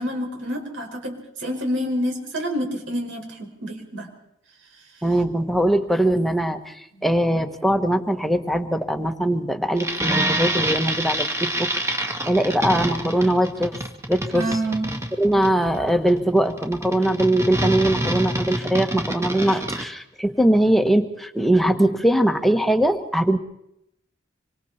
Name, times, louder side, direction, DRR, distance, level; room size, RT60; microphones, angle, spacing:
voice 1, 0.0-4.1 7.0-7.1 14.3-15.1, equal, 75° right, 2 dB, 5.5 m, -28 dB
voice 2, 5.0-6.7 7.0-11.7 12.0-13.8 14.1-14.4 15.2-23.4, right 1 dB, ahead, 6 dB, 1.4 m, -21 dB
sound 1, 9.8-19.8, right 1 dB, 15° right, 2.5 m, -26 dB
25.5 x 25.5 x 4.4 m, 0.78 s
head